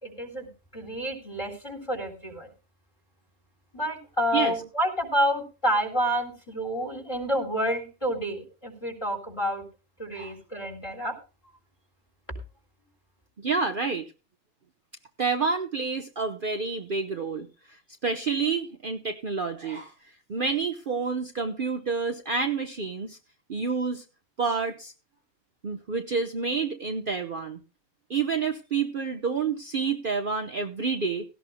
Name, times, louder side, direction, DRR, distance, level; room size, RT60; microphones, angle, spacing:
voice 1, 0.0-2.5 3.7-9.6 10.0-11.2, equal, 20° left, 5 dB, 3.7 m, -29 dB
voice 2, 13.4-14.1 15.2-17.8 18.0-19.9 20.3-23.2 23.5-24.0 24.4-24.9 25.6-27.6 28.1-31.2, right 5 dB, 45° right, 5 dB, 1.0 m, -28 dB
17.5 x 15.0 x 2.2 m, 0.32 s
omnidirectional pair, 1.4 m